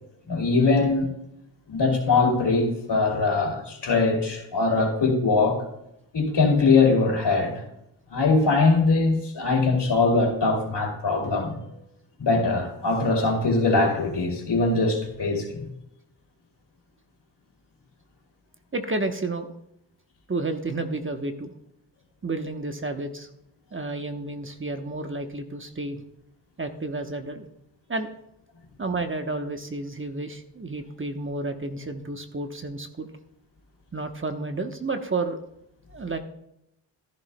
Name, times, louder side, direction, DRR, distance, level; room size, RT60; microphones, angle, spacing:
voice 1, 0.3-1.1 1.7-5.7 6.1-7.6 8.1-11.6 12.2-15.6, left 3 dB, 65° left, 2 dB, 2.7 m, -22 dB
voice 2, 18.7-19.5 20.3-21.5 22.2-23.3 23.7-26.0 26.6-27.4 27.9-28.1 28.8-33.1 33.9-35.4 35.9-36.2, right 2 dB, 30° right, 6 dB, 1.0 m, -31 dB
13.0 x 11.0 x 2.2 m, 0.80 s
cardioid pair, 55°, 43 cm